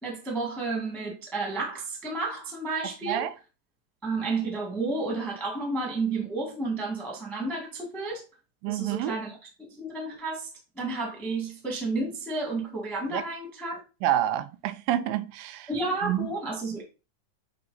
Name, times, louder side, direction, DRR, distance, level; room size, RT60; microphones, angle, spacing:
voice 1, 0.0-3.3 4.0-8.2 8.7-10.5 10.7-13.8 15.7-16.8, right 3 dB, ahead, 0.9 m, -31 dB
voice 2, 3.0-3.3 8.6-9.2 13.1-13.2 14.0-15.7 16.0-16.3, right 12 dB, 85° right, 2.2 m, -28 dB
7.6 x 3.1 x 4.1 m
omnidirectional pair, 4.1 m